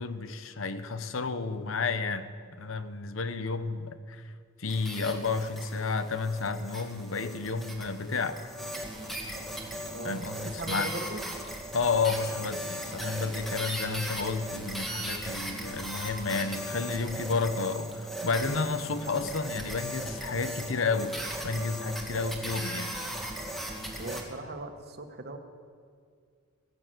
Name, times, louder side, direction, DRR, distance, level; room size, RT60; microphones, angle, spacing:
voice 1, 0.0-4.3 4.6-8.4 10.0-10.9 11.7-21.2 21.4-22.9, left 4 dB, 75° left, 11 dB, 0.9 m, -31 dB
sound 1, 4.7-24.2, equal, ahead, 1.9 m, -38 dB
voice 2, 9.9-11.3 13.3-13.5 24.0-25.4, right 2 dB, 55° right, 6 dB, 1.3 m, -39 dB
16.0 x 11.0 x 7.7 m, 2.1 s
head